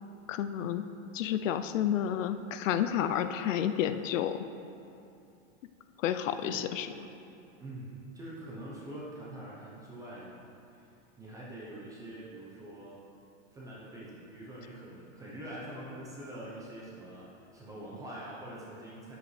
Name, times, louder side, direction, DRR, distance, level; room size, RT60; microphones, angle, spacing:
voice 1, 0.3-0.9 1.1-4.4 6.0-6.9, left 10 dB, 75° left, 10 dB, 0.5 m, -30 dB
voice 2, 7.6-10.3 10.7-10.9 11.2-13.0 13.5-19.2, right 1 dB, 10° right, -6 dB, 0.6 m, -44 dB
9.6 x 8.0 x 3.2 m, 2.7 s
supercardioid pair, 165°, 39 cm